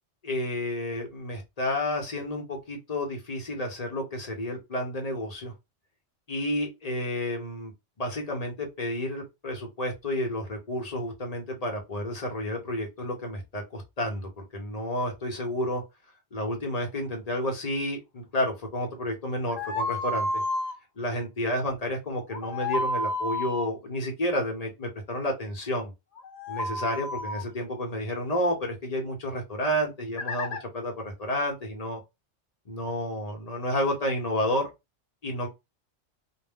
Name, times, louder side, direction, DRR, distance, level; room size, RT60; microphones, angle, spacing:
voice 1, 0.2-5.5 6.3-7.7 8.0-15.8 16.3-20.4 21.0-25.9 26.5-32.0 32.7-34.7 35.2-35.5, left 1 dB, 40° left, 0.7 m, -31 dB
sound 1, 19.5-20.7 22.3-23.7 26.2-27.4 30.2-30.6, left 1 dB, 65° left, 1.1 m, -30 dB
2.4 x 2.1 x 3.4 m
omnidirectional pair, 1.2 m